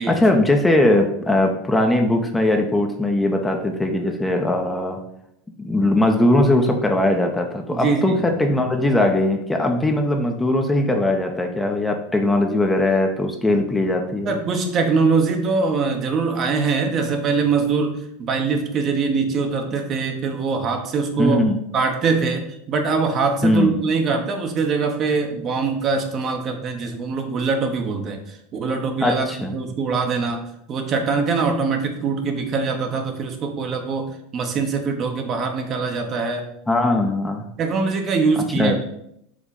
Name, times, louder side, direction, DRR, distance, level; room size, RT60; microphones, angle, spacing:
voice 1, 0.0-5.0 5.6-14.3 21.2-21.6 23.4-23.7 29.0-29.5 36.7-37.5 38.5-38.8, left 1 dB, 10° left, 3 dB, 0.9 m, -20 dB
voice 2, 7.7-8.2 14.2-21.4 21.7-30.4 30.7-36.5 37.6-38.9, right 4 dB, 40° right, 4 dB, 1.1 m, -23 dB
5.1 x 3.6 x 5.3 m, 0.75 s
hypercardioid pair, 85°, 0 cm